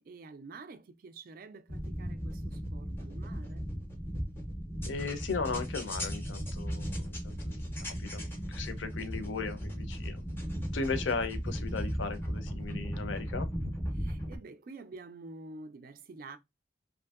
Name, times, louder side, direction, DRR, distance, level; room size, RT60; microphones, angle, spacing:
voice 1, 0.0-3.7 7.8-8.2 13.9-16.4, right 3 dB, 45° right, 0.3 m, -49 dB
sound 1, 1.7-14.4, equal, 10° left, 0.5 m, -36 dB
voice 2, 4.9-10.2 10.7-13.7, left 4 dB, 70° left, 0.5 m, -37 dB
2.6 x 2.5 x 2.3 m
head